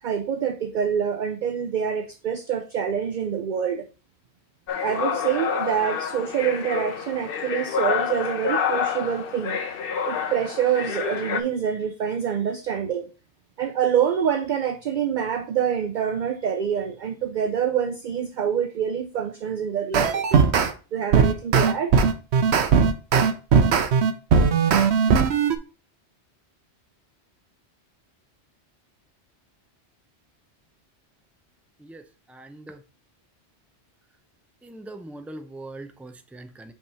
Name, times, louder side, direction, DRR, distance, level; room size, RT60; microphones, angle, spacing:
voice 1, 0.0-3.9 4.8-9.6 10.1-13.1 13.6-20.4 20.9-21.9, right 8 dB, 55° right, 0.6 m, -26 dB
sound 1, 4.7-11.4, left 7 dB, 60° left, 0.9 m, -28 dB
sound 2, 19.9-20.7 21.1-25.6, right 6 dB, 70° right, 1.0 m, -18 dB
voice 2, 32.3-32.8 34.6-36.7, right 2 dB, ahead, 0.3 m, -41 dB
5.4 x 3.6 x 5.4 m
omnidirectional pair, 1.1 m